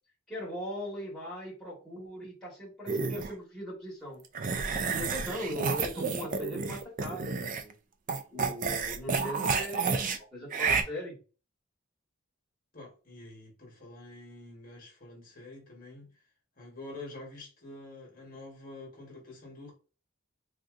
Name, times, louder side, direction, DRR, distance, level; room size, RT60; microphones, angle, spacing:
voice 1, 0.3-4.2 4.7-7.7 8.3-11.2, equal, ahead, 1.3 m, -39 dB
sound 1, 2.9-3.3 4.4-7.7 8.1-10.2 10.5-10.8, right 5 dB, 35° right, 0.3 m, -30 dB
voice 2, 12.7-16.2 16.6-19.7, left 2 dB, 40° left, 1.2 m, -47 dB
3.6 x 2.6 x 2.4 m
head